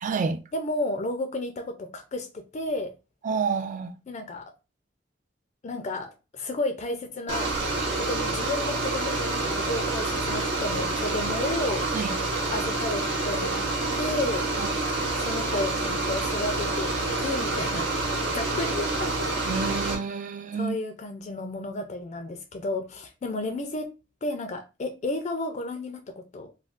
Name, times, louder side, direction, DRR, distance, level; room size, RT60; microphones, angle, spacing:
voice 1, 0.0-0.4 3.2-3.9 11.9-12.2 14.6-14.7 19.4-20.8, right 5 dB, 45° right, 0.3 m, -29 dB
voice 2, 0.5-2.3 2.5-2.9 4.1-4.4 5.6-7.5 8.0-11.8 12.5-13.7 14.0-14.4 15.2-19.2 20.5-23.9 24.2-26.5, left 2 dB, 40° left, 0.4 m, -32 dB
sound 1, 7.3-20.0, right 2 dB, 70° right, 0.8 m, -28 dB
2.4 x 2.2 x 3.5 m
head